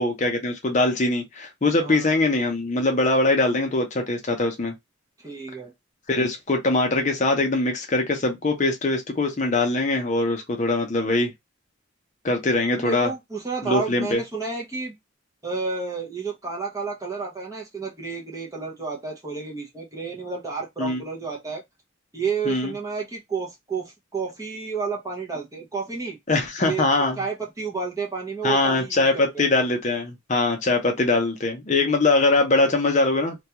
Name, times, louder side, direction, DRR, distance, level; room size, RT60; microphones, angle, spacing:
voice 1, 0.0-4.7 6.1-11.3 12.2-13.1 13.6-14.2 20.8-21.0 22.4-22.7 26.3-27.2 28.4-33.4, left 2 dB, 35° left, 0.6 m, -22 dB
voice 2, 1.8-2.2 5.2-5.7 12.8-14.9 15.4-21.6 22.1-26.2 26.6-26.9 27.2-29.5, right 4 dB, 15° right, 0.6 m, -31 dB
2.2 x 2.2 x 2.8 m
head